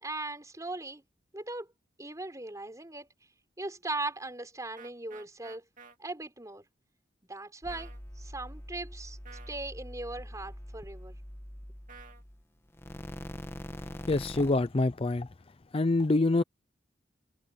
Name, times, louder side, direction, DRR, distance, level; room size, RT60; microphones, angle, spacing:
voice 1, 0.0-1.0 1.3-1.7 2.0-3.1 3.6-5.6 6.0-6.6 7.3-7.9 8.2-9.2 9.5-11.2, right 2 dB, 20° right, 4.4 m, -39 dB
sound 1, 4.8-6.0 7.7-8.0 9.3-9.6 11.9-12.2, right 5 dB, 45° right, 2.6 m, -51 dB
sound 2, 7.6-12.4 12.7-14.8, equal, 15° left, 1.5 m, -44 dB
voice 2, 14.0-15.3 15.7-16.4, left 2 dB, 30° left, 0.5 m, -26 dB
head